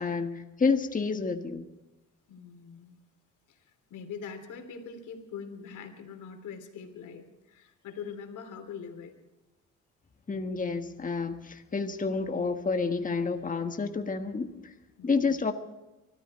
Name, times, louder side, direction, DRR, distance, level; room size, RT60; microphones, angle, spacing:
voice 1, 0.0-1.7 10.3-14.7 15.0-15.5, left 4 dB, 25° left, 6 dB, 1.5 m, -29 dB
voice 2, 2.3-3.0 3.5-9.1 15.0-15.4, left 6 dB, 80° left, 6 dB, 3.2 m, -43 dB
24.5 x 13.5 x 4.3 m, 1.0 s
cardioid pair, 90°, 30 cm